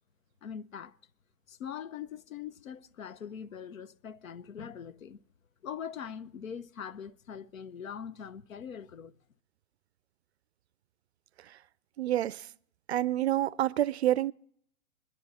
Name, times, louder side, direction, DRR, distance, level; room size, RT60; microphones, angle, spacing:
voice 1, 0.4-1.0 1.5-5.2 5.6-9.1, left 8 dB, 70° left, 0.9 m, -42 dB
voice 2, 12.0-12.4 12.9-14.3, right 13 dB, 50° right, 0.4 m, -28 dB
22.5 x 10.5 x 4.1 m
hypercardioid pair, 135°, 41 cm